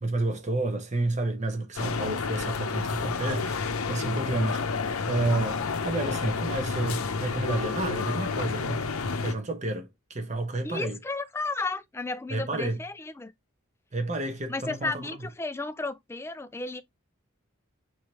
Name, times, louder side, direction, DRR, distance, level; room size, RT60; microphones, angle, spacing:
voice 1, 0.0-4.7 5.1-8.9 9.2-11.0 12.3-12.8 13.9-15.2, right 2 dB, 35° right, 0.9 m, -30 dB
sound 1, 1.8-9.3, left 4 dB, 85° left, 0.7 m, -30 dB
voice 2, 10.6-13.3 14.5-16.8, left 3 dB, 10° left, 0.3 m, -33 dB
4.5 x 3.3 x 3.0 m
head